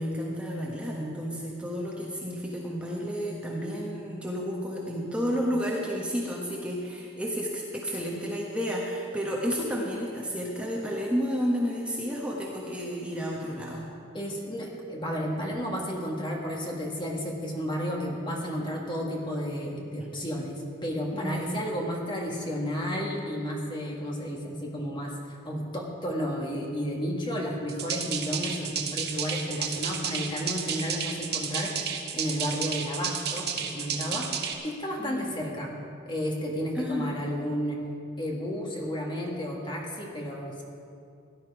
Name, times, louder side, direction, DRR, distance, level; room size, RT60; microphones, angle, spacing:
voice 1, 0.0-13.8 20.0-20.1 21.1-21.5 35.0-35.4 36.7-37.2, equal, 5° right, -3 dB, 1.3 m, -31 dB
voice 2, 14.1-31.9 32.1-35.7 36.1-37.8 38.2-40.6, equal, 25° left, -1 dB, 1.8 m, -32 dB
sound 1, 27.7-34.5, right 7 dB, 55° right, 1.2 m, -32 dB
17.0 x 11.0 x 4.8 m, 2.3 s
head